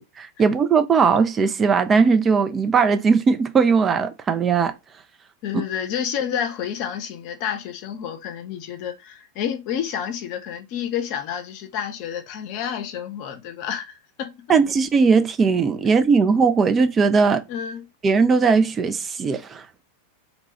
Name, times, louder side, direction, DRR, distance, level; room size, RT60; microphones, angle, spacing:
voice 1, 0.0-4.7 14.5-17.4 18.0-19.8, right 5 dB, 20° right, 0.4 m, -19 dB
voice 2, 5.4-14.3 17.5-17.9, left 9 dB, 45° left, 0.6 m, -29 dB
2.9 x 2.3 x 4.0 m
figure-of-eight pair, 90°, 0 cm